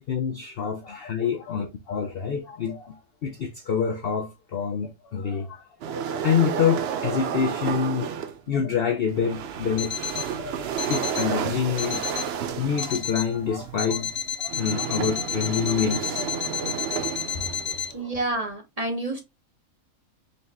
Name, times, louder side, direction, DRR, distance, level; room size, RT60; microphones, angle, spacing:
voice 1, 0.0-3.0 3.2-8.1 8.5-12.1 12.5-14.1 14.4-16.7 17.3-18.1, left 7 dB, 60° left, 0.6 m, -27 dB
sound 1, 5.8-8.4 9.1-18.0, right 8 dB, 70° right, 0.6 m, -31 dB
Alarm, 9.8-10.4 10.8-11.4 11.8-12.4 12.8-13.4 13.8-17.9, left 8 dB, 90° left, 1.2 m, -31 dB
voice 2, 17.9-19.2, right 2 dB, 30° right, 0.9 m, -29 dB
4.1 x 2.9 x 3.4 m
omnidirectional pair, 1.6 m